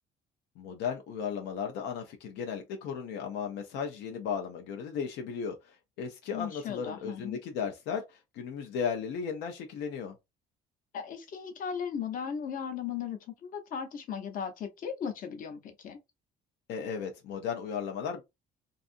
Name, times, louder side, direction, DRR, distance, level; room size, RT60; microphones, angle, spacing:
voice 1, 0.6-10.1 16.7-18.2, left 6 dB, 85° left, 0.5 m, -35 dB
voice 2, 6.3-7.4 10.9-16.0, left 7 dB, 55° left, 0.7 m, -37 dB
2.6 x 2.4 x 2.5 m
cardioid pair, 110°, 17 cm